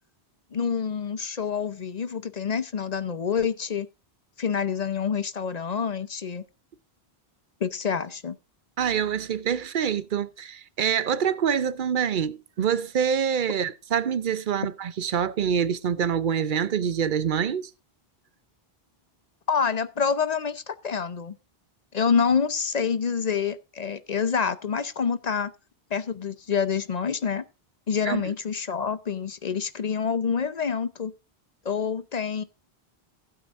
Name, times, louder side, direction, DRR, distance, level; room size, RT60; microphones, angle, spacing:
voice 1, 0.5-3.9 4.4-6.4 7.6-8.4 19.5-21.3 21.9-25.5 25.9-27.4 27.9-31.1 31.6-32.4, left 6 dB, 45° left, 0.7 m, -27 dB
voice 2, 8.8-17.7 28.1-28.2, right 8 dB, 55° right, 0.8 m, -26 dB
15.5 x 8.6 x 2.5 m
omnidirectional pair, 1.1 m